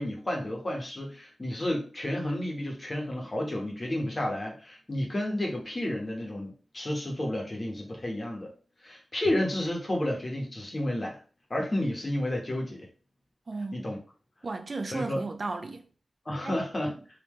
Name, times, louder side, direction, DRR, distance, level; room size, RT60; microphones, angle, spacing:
voice 1, 0.0-8.5 8.8-11.2 11.5-12.9 13.7-14.0 14.9-15.2 16.2-16.9, left 1 dB, 35° left, 1.4 m, -31 dB
voice 2, 13.5-13.8 14.4-15.9 16.4-16.6 16.9-17.0, right 3 dB, 50° right, 0.6 m, -34 dB
3.8 x 2.9 x 3.2 m
cardioid pair, 60°, 0 cm